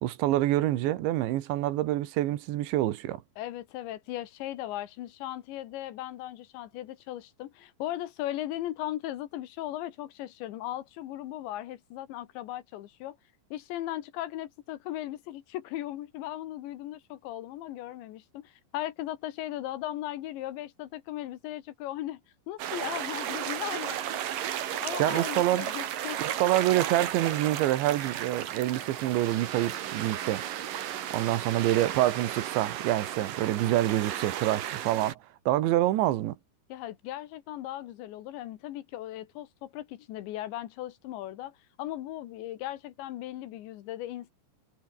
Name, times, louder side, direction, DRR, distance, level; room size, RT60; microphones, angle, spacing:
voice 1, 0.0-3.2 25.0-25.7 26.2-30.5 31.1-35.2 35.5-36.4, right 14 dB, 85° right, 3.7 m, -26 dB
voice 2, 3.4-13.2 13.5-22.2 22.5-24.2 24.5-26.4 36.7-44.3, left 14 dB, 85° left, 3.8 m, -37 dB
sound 1, 22.6-35.1, right 11 dB, 60° right, 3.0 m, -34 dB
omnidirectional pair, 5.0 m